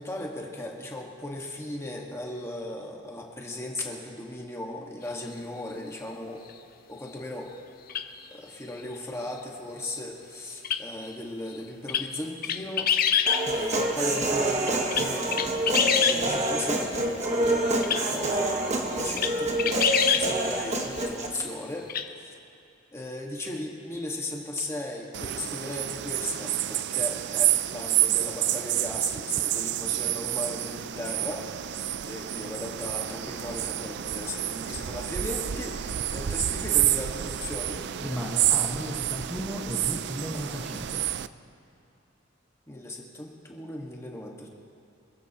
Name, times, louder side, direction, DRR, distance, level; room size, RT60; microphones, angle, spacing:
voice 1, 0.0-6.4 6.9-7.5 8.3-12.9 13.5-22.4 22.9-37.8 42.7-44.5, left 1 dB, 15° left, -1 dB, 1.7 m, -37 dB
sound 1, 7.9-8.0 10.6-10.8 11.9-12.1 12.4-13.4 14.7-16.2 17.8-18.0 18.6-18.7 19.2-19.3 19.6-20.3 21.9-22.0, left 8 dB, 45° left, 0.7 m, -24 dB
Human voice, 13.3-21.3, right 1 dB, 35° right, 1.5 m, -27 dB
sound 2, 25.1-41.3, right 12 dB, 60° right, 0.4 m, -29 dB
voice 2, 38.0-41.0, equal, ahead, -4 dB, 1.5 m, -35 dB
26.5 x 15.0 x 3.0 m, 2.7 s
head